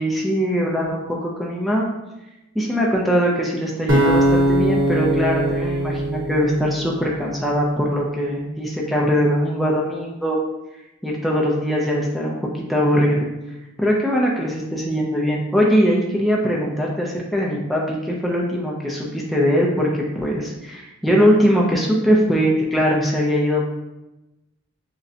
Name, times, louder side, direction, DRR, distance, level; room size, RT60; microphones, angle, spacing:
voice 1, 0.0-1.9 2.5-10.4 11.0-12.3 12.7-13.2 13.8-23.6, equal, ahead, -4 dB, 0.4 m, -21 dB
sound 1, 3.9-7.1, right 1 dB, 70° right, 1.0 m, -20 dB
6.2 x 2.2 x 2.7 m, 0.97 s
head